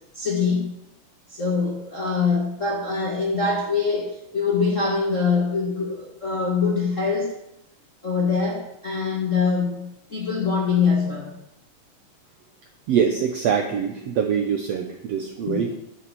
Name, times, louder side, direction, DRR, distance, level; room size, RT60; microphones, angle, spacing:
voice 1, 0.1-0.8 1.3-7.4 8.0-11.4 15.4-15.6, left 5 dB, 35° left, -2 dB, 1.3 m, -24 dB
voice 2, 12.9-15.7, right 7 dB, 75° right, 4 dB, 1.5 m, -24 dB
11.0 x 6.6 x 7.6 m, 0.80 s
omnidirectional pair, 4.0 m